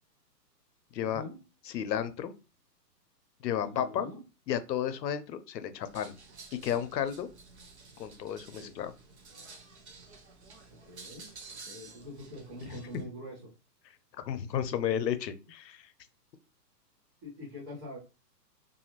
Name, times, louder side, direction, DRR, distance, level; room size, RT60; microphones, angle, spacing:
voice 1, 1.0-1.4 3.6-4.2 8.5-8.7 10.8-11.3 11.6-13.5 17.2-18.0, left 1 dB, 25° right, -9 dB, 0.9 m, -44 dB
voice 2, 1.7-2.3 3.4-4.1 4.5-6.1 6.6-7.3 8.0-8.9 14.2-15.9, left 9 dB, 80° left, 11 dB, 0.6 m, -32 dB
sound 1, 5.8-13.0, right 4 dB, 45° right, 0.5 m, -51 dB
2.5 x 2.4 x 2.9 m, 0.30 s
hypercardioid pair, 165°, 50 cm